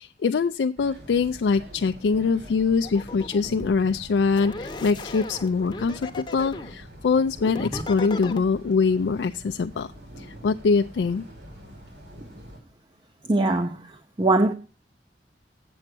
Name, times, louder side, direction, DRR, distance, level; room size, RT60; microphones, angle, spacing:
voice 1, 0.0-9.9 10.2-11.2, left 5 dB, 90° left, 0.4 m, -23 dB
sound 1, 0.8-12.6, equal, 75° right, 3.2 m, -45 dB
sound 2, 2.8-3.7 4.3-6.8 7.4-8.4, left 2 dB, 25° left, 0.8 m, -36 dB
voice 2, 13.3-13.8 14.2-14.5, right 2 dB, 25° right, 0.5 m, -20 dB
7.8 x 7.2 x 6.0 m
head